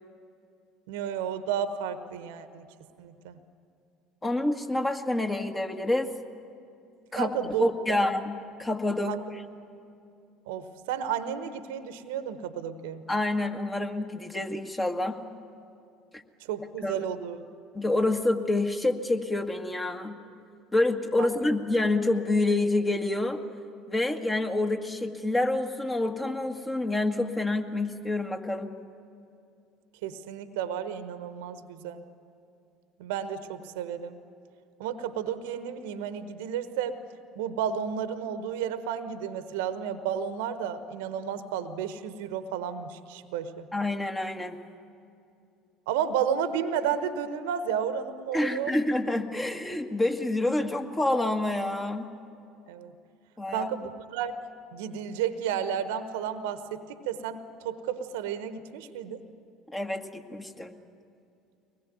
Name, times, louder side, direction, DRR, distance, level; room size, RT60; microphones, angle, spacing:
voice 1, 0.9-2.7 3.0-3.3 7.1-8.1 9.1-9.2 10.5-13.0 16.4-17.4 21.2-21.6 30.0-32.0 33.0-34.2 34.8-37.0 37.3-43.7 45.9-48.7 52.7-52.9 53.5-54.4 54.7-59.2, right 8 dB, 70° right, 11 dB, 1.2 m, -32 dB
voice 2, 4.2-6.1 7.1-7.3 7.6-9.2 13.1-15.2 16.8-17.0 17.7-20.2 20.7-23.4 23.9-28.7 43.7-44.5 48.3-52.1 53.4-53.7 59.7-60.7, left 2 dB, 15° left, 4 dB, 1.9 m, -27 dB
24.0 x 20.5 x 9.3 m, 2.6 s
figure-of-eight pair, 65°, 0 cm